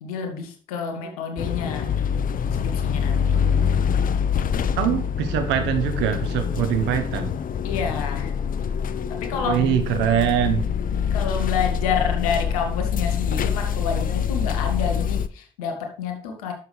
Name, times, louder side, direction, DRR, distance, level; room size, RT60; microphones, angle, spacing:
voice 1, 0.0-2.0 2.5-3.4 7.6-8.3 9.1-9.6 11.1-16.5, left 6 dB, 85° left, 5 dB, 1.3 m, -29 dB
sound 1, 1.4-15.3, left 7 dB, 50° left, 0.6 m, -25 dB
voice 2, 4.8-7.3 9.5-10.7, right 9 dB, 75° right, 9 dB, 1.1 m, -23 dB
11.0 x 6.9 x 3.3 m, 0.41 s
hypercardioid pair, 45°, 18 cm